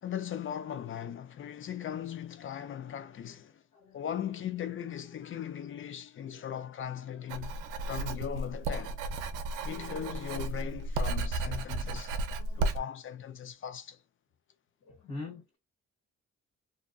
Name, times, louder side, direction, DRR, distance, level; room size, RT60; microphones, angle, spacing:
voice 1, 0.0-3.6 3.9-7.5 7.8-9.0 9.6-12.1 12.6-14.0, left 9 dB, 45° left, 0.5 m, -38 dB
voice 2, 2.4-2.7 3.7-4.4 6.2-6.4 12.4-12.7 14.8-15.6, left 3 dB, 65° left, 1.2 m, -46 dB
Writing, 7.3-12.8, right 2 dB, 90° right, 0.5 m, -33 dB
2.5 x 2.4 x 2.3 m
cardioid pair, 90°, 30 cm